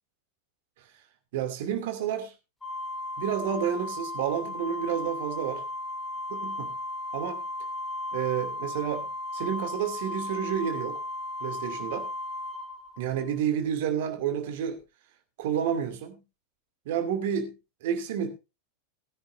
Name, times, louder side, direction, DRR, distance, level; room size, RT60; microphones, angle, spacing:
voice 1, 1.3-2.3 3.2-5.6 6.3-6.7 7.1-7.4 8.1-9.1 9.3-11.0 11.4-12.1 13.0-14.8 15.4-16.2 16.9-17.5 17.8-18.3, right 9 dB, 50° right, 2.4 m, -30 dB
Organ, 2.6-13.3, left 1 dB, 10° left, 3.1 m, -35 dB
19.5 x 10.0 x 2.6 m
figure-of-eight pair, 90°, 0 cm